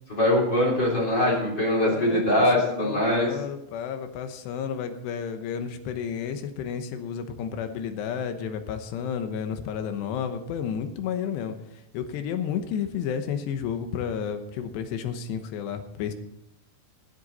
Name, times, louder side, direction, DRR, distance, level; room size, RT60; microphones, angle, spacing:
voice 1, 0.1-3.3, left 1 dB, 25° left, -3 dB, 3.4 m, -22 dB
voice 2, 1.8-11.6 11.9-16.1, left 7 dB, 75° left, 8 dB, 2.8 m, -31 dB
22.5 x 8.0 x 4.1 m, 0.85 s
omnidirectional pair, 5.9 m